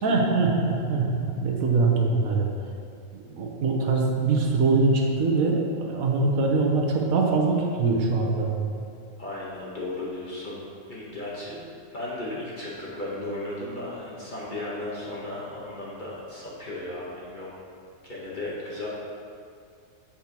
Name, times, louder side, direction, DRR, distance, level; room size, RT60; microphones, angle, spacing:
voice 1, 0.0-2.5 3.3-8.5, right 3 dB, 75° right, 0 dB, 1.4 m, -23 dB
voice 2, 9.2-17.5 18.0-18.9, left 1 dB, 35° left, -7 dB, 1.3 m, -35 dB
7.4 x 7.3 x 3.0 m, 2.3 s
omnidirectional pair, 1.5 m